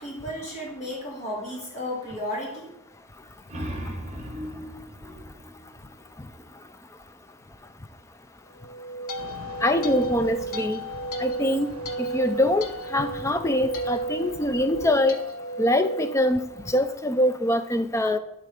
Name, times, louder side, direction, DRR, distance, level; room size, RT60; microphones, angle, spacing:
voice 1, 0.0-2.7, left 1 dB, 30° left, -3 dB, 2.3 m, -33 dB
sound 1, 3.2-6.7, equal, 30° right, 1.3 m, -38 dB
sound 2, 8.6-16.9, right 2 dB, 85° left, 0.8 m, -33 dB
sound 3, 9.2-14.9, right 2 dB, 65° right, 0.8 m, -45 dB
voice 2, 9.6-10.8 11.2-11.7 12.0-15.2 15.6-16.4 16.7-18.2, left 1 dB, 15° left, 10 dB, 0.4 m, -23 dB
11.0 x 3.8 x 4.9 m, 0.86 s
head